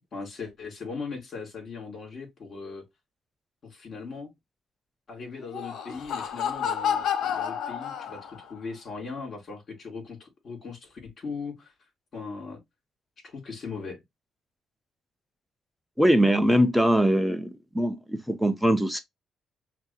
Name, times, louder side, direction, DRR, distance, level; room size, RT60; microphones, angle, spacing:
voice 1, 0.1-2.8 3.6-4.3 5.1-11.7 12.1-12.6 13.2-14.0, left 4 dB, 45° left, 3.2 m, -39 dB
Laughter, 5.4-8.5, left 8 dB, 75° left, 0.8 m, -30 dB
voice 2, 16.0-19.0, equal, 5° right, 0.8 m, -22 dB
5.7 x 2.2 x 2.8 m
cardioid pair, 90°, 0 cm